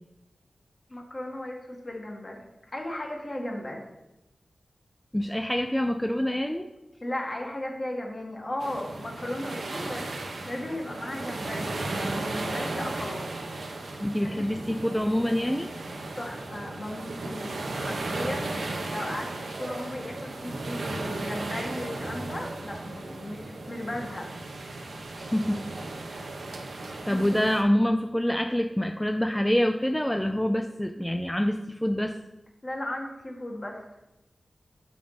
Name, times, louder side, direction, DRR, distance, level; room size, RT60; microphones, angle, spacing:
voice 1, 0.9-2.4 2.7-3.8 7.0-13.3 13.9-14.5 16.1-19.3 19.6-24.3 27.0-27.4 32.6-33.8, left 1 dB, 40° left, 0 dB, 1.6 m, -36 dB
voice 2, 5.1-6.7 14.0-15.8 25.2-25.7 27.1-32.2, equal, 5° left, 6 dB, 0.4 m, -26 dB
sound 1, 8.6-27.6, right 2 dB, 90° right, 0.9 m, -35 dB
6.3 x 5.7 x 4.0 m, 0.95 s
wide cardioid pair, 60°, 0 cm